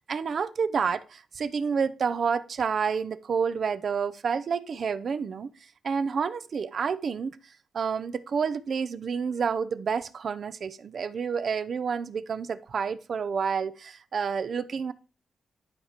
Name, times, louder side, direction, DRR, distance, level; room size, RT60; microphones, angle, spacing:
voice 1, 0.1-5.5 5.8-7.4 7.7-14.9, right 6 dB, 60° right, 0.7 m, -29 dB
11.5 x 5.0 x 4.5 m
cardioid pair, 70°, 0 cm